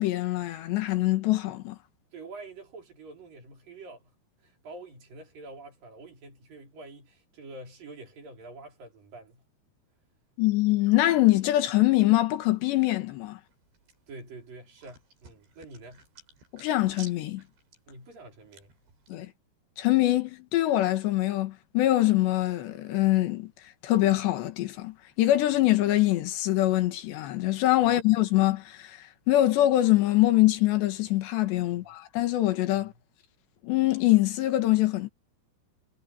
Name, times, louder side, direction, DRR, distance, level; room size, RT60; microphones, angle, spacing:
voice 1, 0.0-1.8 10.4-13.4 16.5-17.4 19.1-19.3 19.8-23.5 23.8-32.9 33.6-35.1, left 16 dB, 85° left, 3.8 m, -24 dB
voice 2, 2.1-4.1 4.4-9.4 14.1-16.1 17.9-18.8 27.8-28.0 31.6-31.9 32.8-33.0, right 2 dB, 55° right, 6.3 m, -46 dB
sound 1, 13.4-19.1, right 4 dB, 75° right, 10.5 m, -54 dB
omnidirectional pair, 4.9 m